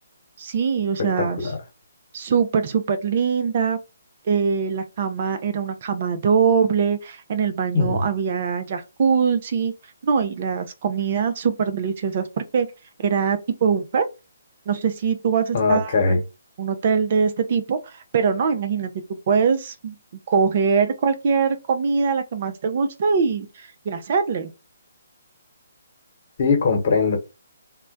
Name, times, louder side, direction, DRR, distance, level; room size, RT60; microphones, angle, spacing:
voice 1, 0.4-1.5 2.1-3.8 4.3-9.7 10.0-12.7 13.0-14.1 14.7-16.2 16.6-18.9 19.3-20.0 20.3-24.5, right 6 dB, 45° right, 0.4 m, -22 dB
voice 2, 1.2-1.6 7.7-8.0 15.5-16.2 26.4-27.2, left 4 dB, 50° left, 1.0 m, -20 dB
2.2 x 2.1 x 3.8 m
figure-of-eight pair, 145°, 0 cm